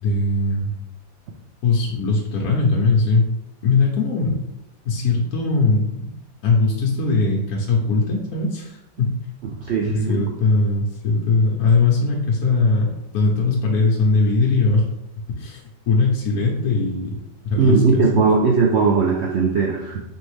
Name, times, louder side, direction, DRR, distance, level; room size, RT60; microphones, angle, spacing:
voice 1, 0.0-0.7 1.6-3.3 3.6-4.4 4.8-6.2 6.4-9.2 9.9-14.9 15.4-17.1 17.4-18.2, left 3 dB, 65° left, -2 dB, 1.1 m, -20 dB
voice 2, 9.6-10.2 17.6-20.0, right 4 dB, 90° right, -1 dB, 0.5 m, -18 dB
4.0 x 3.4 x 3.2 m, 0.87 s
omnidirectional pair, 1.8 m